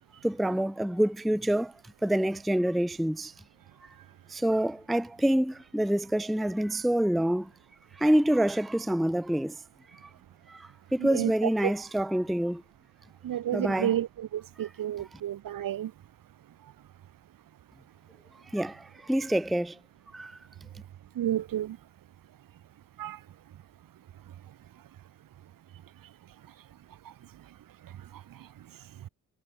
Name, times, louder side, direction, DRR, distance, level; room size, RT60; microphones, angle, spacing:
voice 1, 0.2-1.7 2.0-3.3 4.3-7.5 7.9-9.6 9.9-10.1 10.5-12.6 13.5-13.9 18.5-19.8 20.1-20.4, right 1 dB, ahead, 0.5 m, -27 dB
voice 2, 11.0-11.7 13.2-15.9 21.2-21.8 23.0-23.2, right 11 dB, 75° right, 2.2 m, -31 dB
wide cardioid pair, 160°, 34 cm